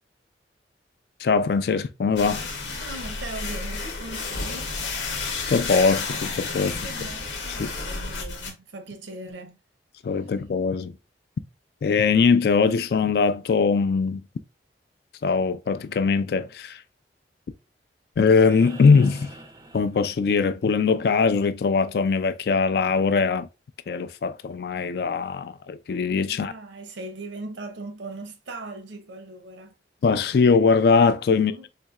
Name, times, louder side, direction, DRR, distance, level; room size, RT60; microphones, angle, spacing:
voice 1, 1.2-2.4 5.5-6.7 7.6-7.7 10.0-10.9 11.8-14.2 15.2-16.8 18.2-19.3 19.7-23.5 23.9-26.5 30.0-31.5, left 5 dB, 60° left, 0.3 m, -21 dB
sound 1, 2.2-8.5, left 4 dB, 90° left, 1.0 m, -31 dB
voice 2, 2.7-4.8 6.7-9.6 26.2-29.8 31.3-31.7, right 2 dB, 85° right, 0.7 m, -39 dB
sound 2, 18.3-20.6 22.4-22.5, right 2 dB, 20° right, 0.4 m, -45 dB
4.1 x 2.7 x 2.3 m
head